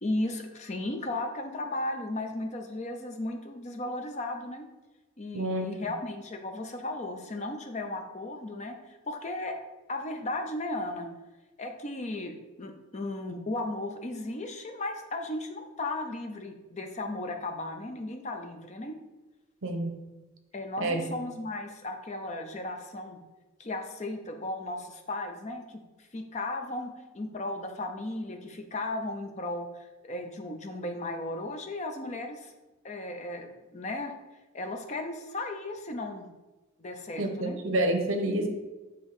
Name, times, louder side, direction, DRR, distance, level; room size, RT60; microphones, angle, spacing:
voice 1, 0.0-4.7 5.2-9.5 9.9-11.1 11.6-19.0 20.5-23.2 23.6-25.8 26.1-32.5 32.8-34.1 34.5-36.3 36.8-37.6, left 2 dB, 30° left, 5 dB, 0.6 m, -35 dB
voice 2, 5.3-5.7 19.6-20.0 20.8-21.1 37.2-38.5, right 1 dB, 70° right, 5 dB, 0.8 m, -28 dB
7.3 x 3.0 x 4.9 m, 1.2 s
head